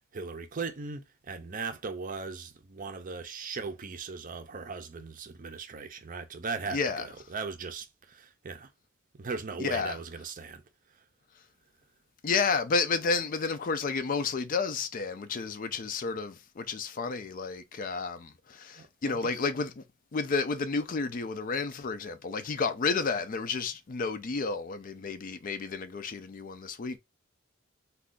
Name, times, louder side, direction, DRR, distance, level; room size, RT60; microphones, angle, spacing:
voice 1, 0.1-8.7 9.2-10.6 18.8-19.3, right 4 dB, 40° right, 0.5 m, -38 dB
voice 2, 6.7-7.1 9.6-10.0 12.2-19.8 20.1-27.0, left 4 dB, 40° left, 0.4 m, -31 dB
2.5 x 2.3 x 3.6 m
head